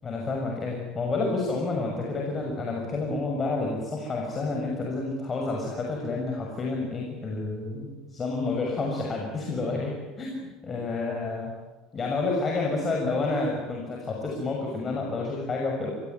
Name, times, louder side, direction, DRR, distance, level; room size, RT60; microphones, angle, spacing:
voice 1, 0.0-11.5 11.9-15.9, left 3 dB, 30° left, 0 dB, 6.4 m, -29 dB
25.0 x 20.0 x 9.5 m, 1.2 s
hypercardioid pair, 75°, 0 cm